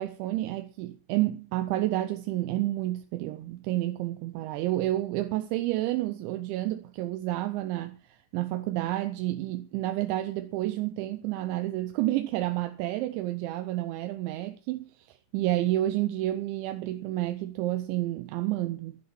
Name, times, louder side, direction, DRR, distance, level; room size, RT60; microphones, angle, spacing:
voice 1, 0.0-8.0 8.3-19.0, right 15 dB, 80° right, 2.9 m, -30 dB
11.0 x 9.3 x 6.1 m
omnidirectional pair, 5.5 m